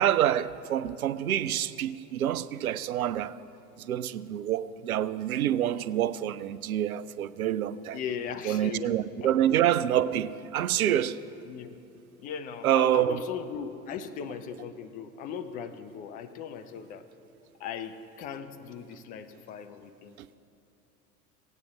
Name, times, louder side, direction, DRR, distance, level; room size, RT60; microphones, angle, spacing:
voice 1, 0.0-3.4 3.8-8.0 8.5-11.2 12.6-13.2, right 11 dB, 70° right, 0.5 m, -27 dB
voice 2, 7.9-8.9 9.2-9.7 11.5-11.7 12.2-17.0 17.6-20.4, left 7 dB, 20° left, 0.4 m, -38 dB
17.0 x 9.0 x 3.4 m
figure-of-eight pair, 80°, 44 cm